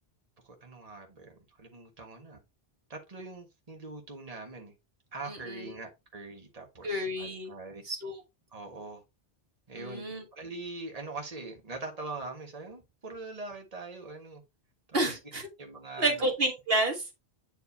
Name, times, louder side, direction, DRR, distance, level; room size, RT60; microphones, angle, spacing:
voice 1, 0.4-2.4 2.9-4.7 5.1-7.8 8.5-9.0 9.7-10.1 10.3-14.4 14.9-15.3 15.6-16.3, right 3 dB, 35° right, 1.7 m, -42 dB
voice 2, 5.3-5.6 6.8-7.5 7.8-8.1 9.8-10.2 14.9-15.5 16.0-17.1, right 1 dB, 65° right, 1.7 m, -30 dB
9.1 x 4.7 x 2.8 m
omnidirectional pair, 1.1 m